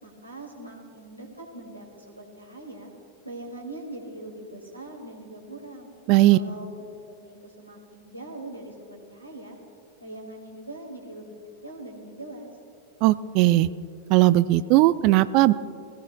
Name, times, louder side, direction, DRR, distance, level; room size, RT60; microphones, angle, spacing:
voice 1, 0.0-2.9 3.2-5.9 6.3-9.6 10.0-11.3 11.6-12.5, right 1 dB, 90° left, 0 dB, 2.4 m, -41 dB
voice 2, 6.1-6.4 13.0-13.7 14.1-15.5, right 17 dB, 45° right, 15 dB, 0.4 m, -18 dB
20.5 x 15.0 x 2.3 m, 2.4 s
figure-of-eight pair, 90°, 0 cm